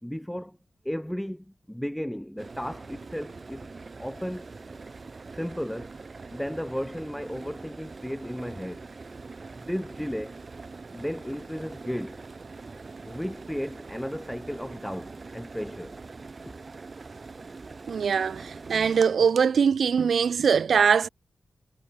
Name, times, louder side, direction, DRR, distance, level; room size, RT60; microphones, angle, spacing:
voice 1, 0.0-0.6 0.8-3.7 4.0-4.5 5.3-6.0 6.3-8.9 9.5-10.4 10.9-12.2 13.0-16.0, equal, 5° left, 4.7 m, -34 dB
sound 1, 2.4-19.0, right 4 dB, 40° right, 5.1 m, -43 dB
voice 2, 17.9-21.1, right 6 dB, 80° right, 1.6 m, -22 dB
wide cardioid pair, 100°, 0 cm